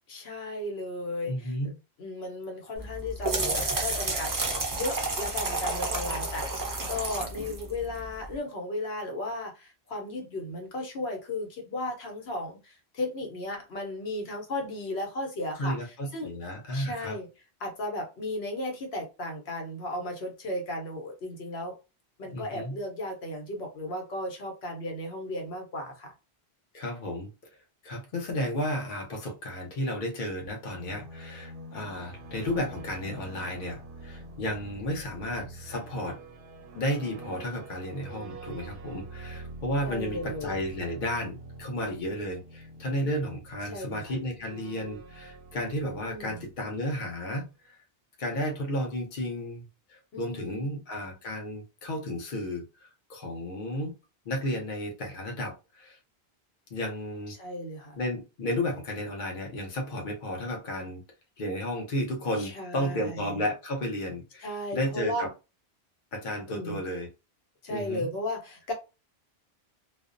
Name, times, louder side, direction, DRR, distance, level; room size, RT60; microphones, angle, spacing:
voice 1, 0.1-1.6 2.0-4.3 4.7-16.3 16.7-17.3 17.6-21.8 22.2-26.1 39.8-40.6 43.7-44.2 46.1-46.5 50.1-50.7 57.3-58.0 62.3-63.4 64.4-65.3 66.5-66.8 67.6-68.7, left 1 dB, 80° left, 2 dB, 1.0 m, -35 dB
voice 2, 1.2-1.7 15.6-17.2 22.3-22.7 26.7-27.3 27.8-36.2 36.7-47.7 48.2-49.6 49.9-53.9 54.3-56.0 56.7-57.3 58.0-61.0 61.4-65.3 66.1-67.1 67.7-68.1, left 1 dB, 55° left, 1 dB, 0.9 m, -33 dB
sound 1, 2.8-8.3, right 2 dB, 35° right, 0.3 m, -31 dB
sound 2, 30.4-47.1, right 2 dB, 65° right, 0.7 m, -46 dB
2.4 x 2.0 x 2.5 m, 0.29 s
omnidirectional pair, 1.1 m